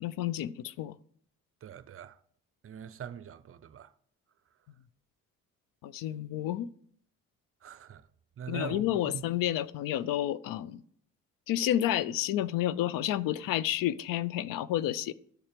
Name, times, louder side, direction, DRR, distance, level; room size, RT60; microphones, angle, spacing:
voice 1, 0.0-0.9 5.8-6.7 8.5-10.8 11.5-15.1, left 12 dB, 80° left, 0.5 m, -30 dB
voice 2, 1.6-2.2 2.6-3.9 7.6-8.1 8.4-9.2, right 8 dB, 40° right, 0.6 m, -43 dB
13.0 x 4.4 x 5.1 m
cardioid pair, 75°, 33 cm